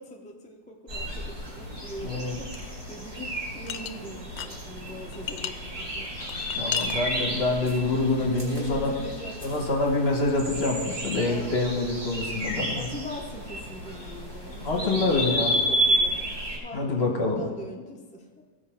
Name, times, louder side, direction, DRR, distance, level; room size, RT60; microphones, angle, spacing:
voice 1, 0.0-6.1 6.5-7.5 8.2-9.7 11.3-11.6 12.8-18.4, left 1 dB, 10° left, 0 dB, 0.5 m, -42 dB
sound 1, 0.9-16.6, equal, 40° right, 2.5 m, -32 dB
voice 2, 2.0-2.4 6.6-8.9 9.4-12.9 14.6-15.6 16.7-17.4, left 2 dB, 40° left, 1 dB, 1.4 m, -26 dB
sound 2, 2.5-2.7 3.7-4.6 4.9-5.5 6.0-7.0, left 10 dB, 70° left, 1.0 m, -33 dB
15.0 x 5.1 x 4.4 m, 1.4 s
omnidirectional pair, 1.7 m